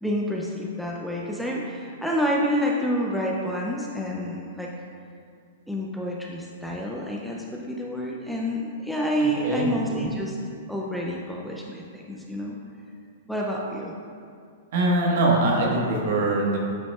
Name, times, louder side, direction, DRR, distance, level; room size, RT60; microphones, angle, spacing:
voice 1, 0.0-4.7 5.7-10.4 10.7-12.6 13.3-13.9, equal, ahead, -3 dB, 0.4 m, -28 dB
voice 2, 14.7-16.6, right 2 dB, 60° right, -2 dB, 1.3 m, -22 dB
8.2 x 5.1 x 2.3 m, 2.3 s
hypercardioid pair, 150°, 0 cm